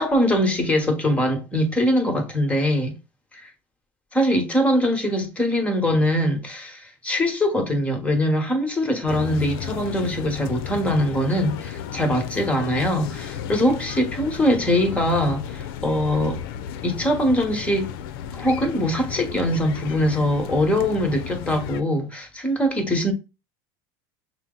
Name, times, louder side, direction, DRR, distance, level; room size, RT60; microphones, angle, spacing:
voice 1, 0.0-2.9 3.3-3.4 4.1-16.4 16.8-17.9 18.3-23.1, equal, 10° left, 1.2 m, -22 dB
sound 1, 9.1-21.8, left 9 dB, 80° left, 0.5 m, -34 dB
5.9 x 2.0 x 3.8 m
supercardioid pair, 125°, 12 cm